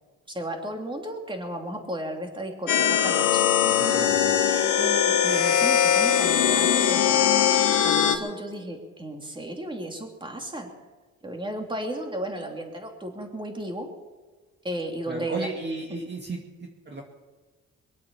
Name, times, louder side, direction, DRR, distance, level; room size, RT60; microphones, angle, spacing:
voice 1, 0.3-3.5 4.8-7.4 7.8-10.7 11.2-13.9 14.6-15.5, right 1 dB, 15° right, 2 dB, 3.1 m, -34 dB
sound 1, 2.7-8.2, left 9 dB, 80° left, 1.5 m, -21 dB
voice 2, 3.6-4.4 15.1-17.0, right 2 dB, 35° right, 0 dB, 2.2 m, -34 dB
23.5 x 8.5 x 7.1 m, 1.3 s
cardioid pair, 90°, 30 cm